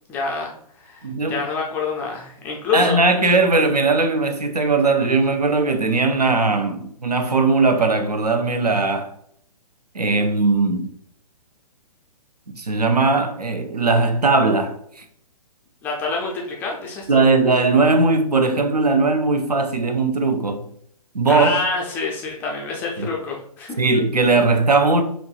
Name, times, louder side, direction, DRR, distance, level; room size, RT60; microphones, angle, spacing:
voice 1, 0.1-3.0 15.8-17.2 21.3-23.8, left 4 dB, 10° left, 0.3 m, -27 dB
voice 2, 1.0-1.4 2.7-9.1 9.9-10.9 12.5-15.0 17.1-20.7 21.1-21.6 23.0-23.1 23.8-25.0, right 3 dB, 80° right, 0.6 m, -19 dB
4.5 x 3.0 x 2.3 m
figure-of-eight pair, 125°, 20 cm